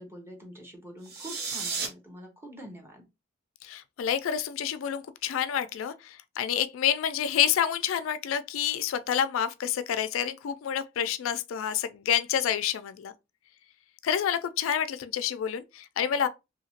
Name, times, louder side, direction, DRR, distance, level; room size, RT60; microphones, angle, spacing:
voice 1, 0.0-3.0, equal, 10° right, 0.9 m, -45 dB
sound 1, 1.0-1.9, right 5 dB, 55° right, 0.8 m, -33 dB
voice 2, 3.6-13.1 14.0-16.3, left 9 dB, 85° left, 0.3 m, -28 dB
2.8 x 2.7 x 2.8 m
head